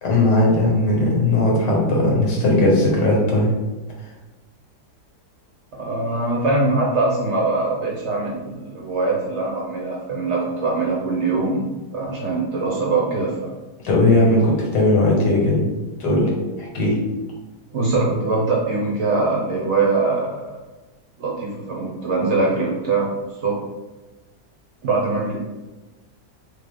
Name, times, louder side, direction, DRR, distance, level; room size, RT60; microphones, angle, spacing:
voice 1, 0.0-3.5 13.8-15.7 16.0-16.3 16.6-17.0, left 1 dB, 80° left, -2 dB, 1.7 m, -18 dB
voice 2, 5.8-13.5 17.7-20.5 21.2-23.1 23.4-23.5 24.8-25.4, right 3 dB, 55° right, -3 dB, 0.8 m, -22 dB
3.8 x 3.0 x 3.6 m, 1.1 s
omnidirectional pair, 1.8 m